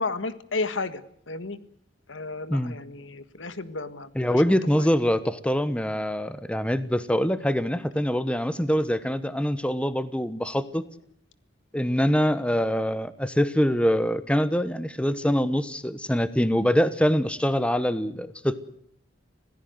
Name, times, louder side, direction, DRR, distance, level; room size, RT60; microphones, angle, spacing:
voice 1, 0.0-1.6 2.1-4.9, left 3 dB, 90° left, 12 dB, 1.8 m, -33 dB
voice 2, 4.2-10.9 11.7-18.6, equal, 5° left, 13 dB, 1.1 m, -24 dB
26.5 x 17.5 x 8.0 m, 0.66 s
head